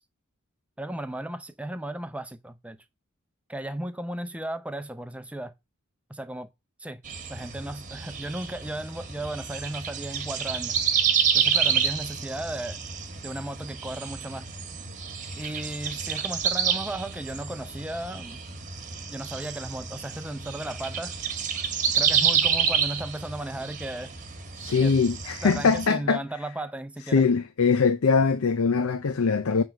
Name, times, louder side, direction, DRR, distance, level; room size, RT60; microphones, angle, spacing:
voice 1, 0.8-2.8 3.5-5.5 6.1-6.5 6.8-7.0 7.3-10.8 11.3-12.8 13.2-14.5 15.4-18.4 19.1-21.2 21.9-24.1 24.8-24.9 25.4-27.2, right 1 dB, 5° right, 0.6 m, -35 dB
sound 1, 7.0-25.9, right 7 dB, 35° right, 1.3 m, -29 dB
voice 2, 24.6-26.2 27.1-29.6, left 5 dB, 90° left, 0.6 m, -22 dB
9.4 x 3.5 x 6.4 m
head